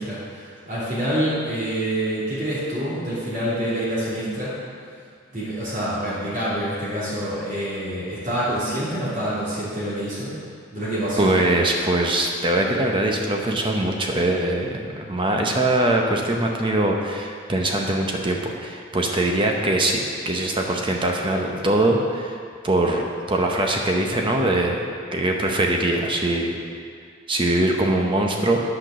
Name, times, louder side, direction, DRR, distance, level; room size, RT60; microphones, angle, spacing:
voice 1, 0.0-4.5 5.3-10.4 10.7-11.3, right 1 dB, 40° right, -10 dB, 2.8 m, -26 dB
voice 2, 11.2-22.4 22.6-23.0 23.3-24.8 25.1-26.6 27.3-28.6, right 1 dB, 25° right, 1 dB, 0.8 m, -22 dB
9.2 x 6.0 x 6.2 m, 2.1 s
head